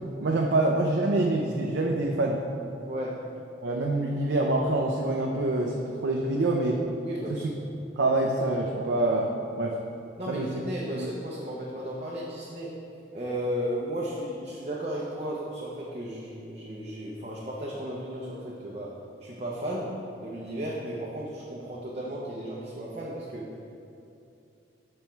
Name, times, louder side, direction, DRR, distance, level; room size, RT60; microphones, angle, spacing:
voice 1, 0.2-2.4 3.6-6.8 7.3-7.4 8.0-9.3 9.6-9.7 10.3-10.5 11.0-11.1, right 2 dB, 80° right, 0 dB, 0.5 m, -26 dB
voice 2, 2.8-3.3 7.0-7.5 10.2-12.8 13.1-18.9 19.2-23.5, equal, 35° right, -5 dB, 0.7 m, -34 dB
7.1 x 4.3 x 4.5 m, 2.7 s
head